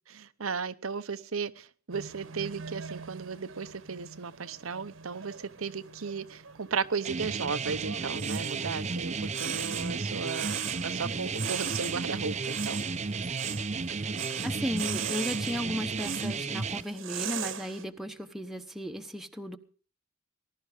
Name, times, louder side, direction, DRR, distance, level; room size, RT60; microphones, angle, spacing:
voice 1, 0.1-10.5 10.8-12.8, right 5 dB, 90° right, 13 dB, 0.9 m, -35 dB
sound 1, 1.9-17.8, right 8 dB, 70° right, 1.2 m, -41 dB
sound 2, 7.1-16.8, right 4 dB, 35° right, 0.6 m, -33 dB
voice 2, 14.4-19.6, equal, ahead, 4 dB, 0.9 m, -35 dB
19.5 x 11.5 x 4.9 m, 0.38 s
head